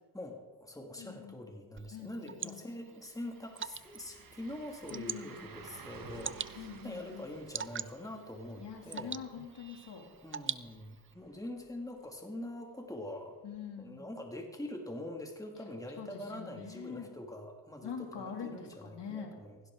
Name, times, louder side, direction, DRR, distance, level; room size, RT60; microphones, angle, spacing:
voice 1, 0.1-9.2 10.2-13.4 13.8-19.6, left 1 dB, 10° left, 2 dB, 2.3 m, -44 dB
voice 2, 1.0-1.4 1.9-2.6 4.9-5.4 6.6-7.3 8.6-10.1 13.4-14.0 16.0-17.1 17.8-19.4, left 6 dB, 70° left, 2 dB, 2.8 m, -44 dB
Water / Drip, 1.8-11.1, right 7 dB, 30° right, 0.5 m, -45 dB
sound 1, 2.3-2.4 2.7-12.5 12.9-13.0 15.7-15.8, right 5 dB, 50° right, 1.7 m, -55 dB
16.5 x 16.5 x 3.8 m, 1.3 s
cardioid pair, 85°, 44 cm